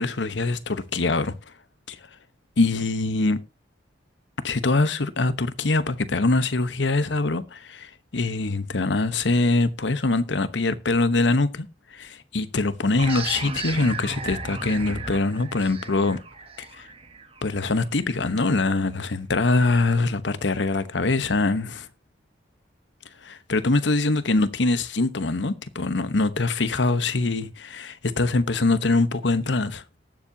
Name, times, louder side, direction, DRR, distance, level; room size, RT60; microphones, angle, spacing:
voice 1, 0.0-1.3 1.9-2.0 2.6-3.4 4.4-16.2 16.6-16.9 17.4-21.9 23.2-29.8, left 3 dB, 75° left, 1.0 m, -23 dB
sound 1, 13.0-18.3, right 4 dB, 30° right, 1.3 m, -35 dB
19.0 x 7.4 x 2.8 m
head